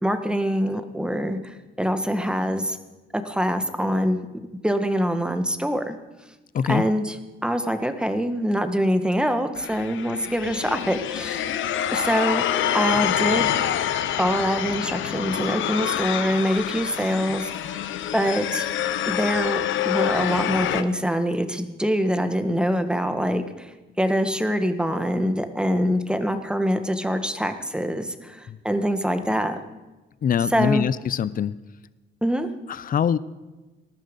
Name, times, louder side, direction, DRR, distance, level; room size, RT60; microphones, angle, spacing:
voice 1, 0.0-2.8 3.1-4.2 4.6-6.0 6.7-7.2 7.4-11.5 11.9-12.4 12.7-13.5 14.2-17.8 18.1-18.7 19.1-23.7 24.0-29.6 30.5-30.8 32.2-32.5, equal, 5° right, 8 dB, 1.5 m, -24 dB
sound 1, 9.5-20.8, left 11 dB, 75° left, 0.9 m, -26 dB
voice 2, 30.2-31.5 32.7-33.2, left 8 dB, 45° left, 17 dB, 0.6 m, -23 dB
19.0 x 13.5 x 5.4 m, 1.1 s
cardioid pair, 90°, 20 cm